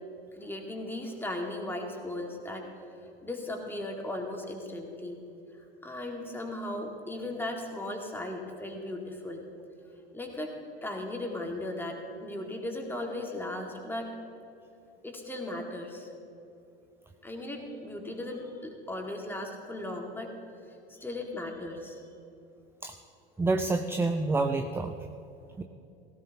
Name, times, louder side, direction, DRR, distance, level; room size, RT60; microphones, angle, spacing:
voice 1, 0.3-2.7 3.2-5.2 5.5-9.4 10.1-10.5 10.8-14.2 15.0-16.1 17.2-20.3 20.9-22.0, left 1 dB, 5° left, 1 dB, 2.2 m, -37 dB
voice 2, 23.4-24.9 25.6-25.7, right 3 dB, 10° right, 8 dB, 0.5 m, -28 dB
18.0 x 16.0 x 3.0 m, 2.8 s
figure-of-eight pair, 80°, 29 cm